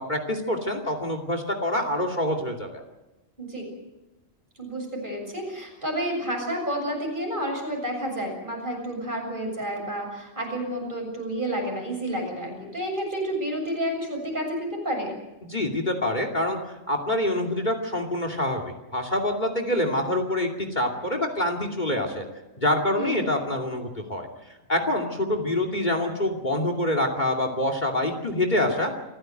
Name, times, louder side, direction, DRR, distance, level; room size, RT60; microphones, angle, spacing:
voice 1, 0.0-2.8 15.4-16.6 16.9-22.2 22.6-24.3 24.7-28.9, left 1 dB, 35° left, 5 dB, 2.8 m, -26 dB
voice 2, 3.4-3.7 4.6-15.2 23.0-23.3, equal, 40° right, 1 dB, 7.2 m, -30 dB
27.5 x 15.5 x 7.9 m, 1.0 s
omnidirectional pair, 1.4 m